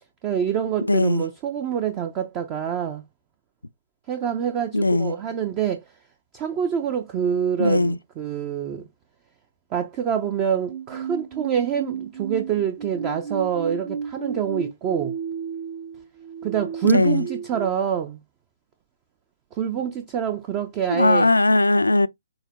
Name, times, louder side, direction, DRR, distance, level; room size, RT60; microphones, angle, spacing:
voice 1, 0.2-3.0 4.1-5.8 6.3-8.9 9.7-15.1 16.4-18.2 19.5-21.3, right 8 dB, 25° right, 0.5 m, -26 dB
voice 2, 0.8-1.2 4.7-5.2 7.6-8.0 16.8-17.3 20.9-22.1, left 2 dB, 85° left, 0.3 m, -19 dB
sound 1, 10.7-17.7, right 7 dB, 55° right, 0.9 m, -33 dB
6.3 x 2.1 x 2.9 m
figure-of-eight pair, 130°, 0 cm